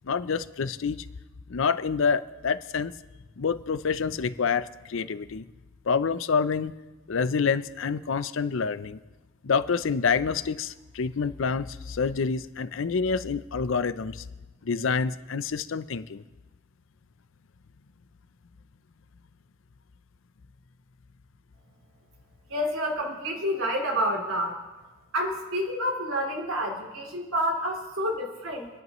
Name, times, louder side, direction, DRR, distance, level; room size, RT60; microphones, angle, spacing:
voice 1, 0.0-1.1 1.5-2.9 3.4-5.5 5.9-6.7 7.1-9.0 9.4-14.2 14.6-16.2, left 5 dB, 65° left, 14 dB, 0.5 m, -27 dB
voice 2, 22.5-24.6 25.1-28.7, equal, 75° right, 0 dB, 3.1 m, -29 dB
28.5 x 10.5 x 3.1 m, 1.2 s
head